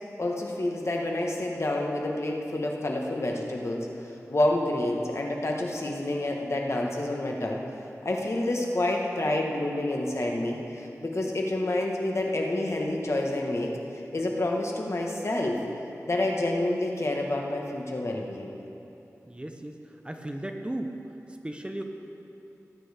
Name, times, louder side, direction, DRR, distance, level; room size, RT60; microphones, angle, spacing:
voice 1, 0.2-3.9 4.3-7.6 8.0-13.8 14.1-15.6 16.1-18.5, left 1 dB, 55° left, 0 dB, 1.5 m, -28 dB
voice 2, 19.2-20.9 21.4-21.8, right 1 dB, 20° right, 4 dB, 0.8 m, -36 dB
18.0 x 9.0 x 3.5 m, 2.9 s
wide cardioid pair, 55°, 6 cm